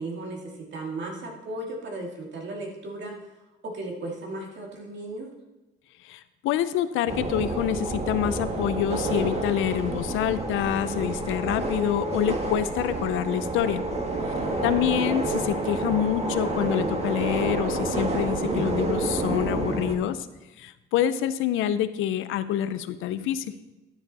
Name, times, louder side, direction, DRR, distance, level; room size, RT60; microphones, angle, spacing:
voice 1, 0.0-3.1 3.6-5.3 14.3-14.7, right 2 dB, 65° right, 0 dB, 2.3 m, -36 dB
voice 2, 6.0-13.8 14.6-20.3 20.6-23.5, left 11 dB, 90° left, 13 dB, 0.6 m, -26 dB
sound 1, 7.1-19.9, right 2 dB, 30° right, 1.5 m, -29 dB
12.0 x 7.1 x 4.1 m, 1.1 s
cardioid pair, 90°, 20 cm